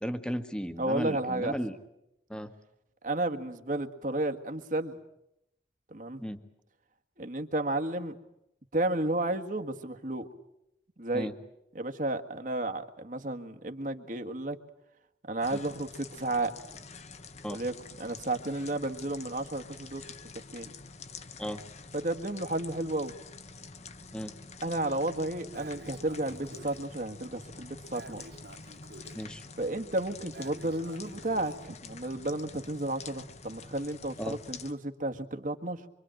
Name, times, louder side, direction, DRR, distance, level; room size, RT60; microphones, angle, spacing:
voice 1, 0.0-1.8 2.3-2.5 6.2-6.4 11.1-11.3 17.4-17.6 21.4-21.6 24.1-24.3 29.1-29.5 34.2-34.4, equal, 5° left, 9 dB, 1.4 m, -35 dB
voice 2, 0.8-1.6 3.0-5.0 5.9-6.2 7.2-8.2 8.7-10.3 11.0-11.3 11.8-14.6 15.3-16.5 17.5-20.0 20.5-20.7 21.9-23.1 24.6-28.2 29.6-35.8, right 2 dB, 45° right, 6 dB, 1.7 m, -32 dB
sound 1, 15.4-34.7, left 4 dB, 40° left, 1.2 m, -47 dB
Breathing, 25.5-26.8 27.9-29.2 30.3-31.7, right 2 dB, 70° right, 3.0 m, -49 dB
25.5 x 25.0 x 9.0 m, 0.84 s
head